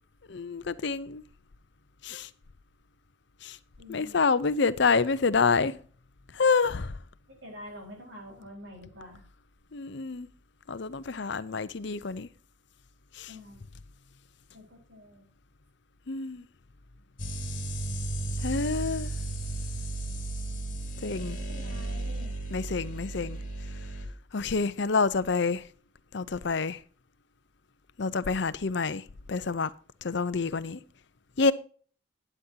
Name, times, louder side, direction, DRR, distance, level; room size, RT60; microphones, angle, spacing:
voice 1, 0.3-1.2 2.0-2.3 3.4-3.6 3.9-5.7 6.3-7.0 9.7-10.3 10.7-12.3 13.1-13.3 16.1-16.4 18.4-19.1 21.0-21.4 22.5-23.4 24.3-25.6 26.1-26.8 28.0-29.0 29.3-29.7 30.0-30.8 31.4-31.5, left 4 dB, 60° left, 0.6 m, -27 dB
voice 2, 3.8-4.2 7.3-9.2 13.3-13.6 14.5-15.3 21.4-22.3, left 1 dB, 70° right, 4.7 m, -46 dB
sound 1, 17.2-24.1, right 2 dB, 40° left, 2.7 m, -34 dB
11.5 x 10.0 x 2.8 m
head